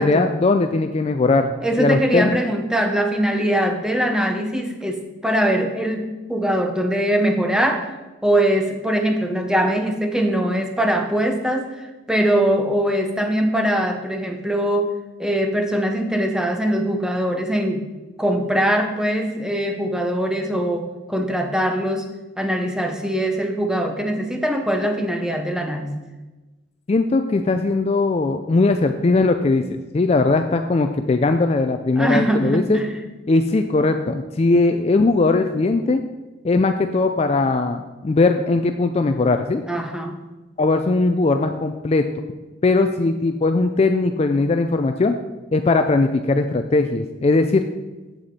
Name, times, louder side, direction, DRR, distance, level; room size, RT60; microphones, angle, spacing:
voice 1, 0.0-1.5 1.8-2.4 26.9-32.8 33.3-36.0 36.4-39.7 40.6-42.1 42.6-45.2 45.5-47.6, left 3 dB, 30° left, 7 dB, 0.3 m, -19 dB
voice 2, 1.6-6.0 6.3-7.9 8.2-11.8 12.1-14.9 15.2-17.8 18.2-22.1 22.4-25.9 32.0-33.0 39.7-40.2, right 1 dB, 5° right, 4 dB, 0.7 m, -22 dB
7.9 x 7.7 x 4.2 m, 1.2 s
head